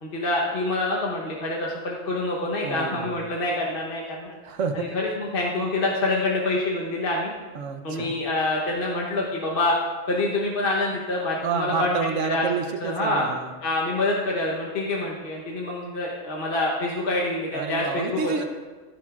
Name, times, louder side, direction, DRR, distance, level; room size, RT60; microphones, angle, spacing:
voice 1, 0.0-4.4 4.7-7.3 7.8-9.7 10.1-12.0 12.2-12.5 12.8-13.3 13.6-18.5, left 2 dB, 45° left, -3 dB, 1.2 m, -26 dB
voice 2, 2.6-3.2 4.4-5.0 7.5-8.1 11.4-13.5 17.5-18.4, right 5 dB, 75° right, 7 dB, 1.2 m, -29 dB
15.5 x 10.0 x 2.5 m, 1.4 s
omnidirectional pair, 1.3 m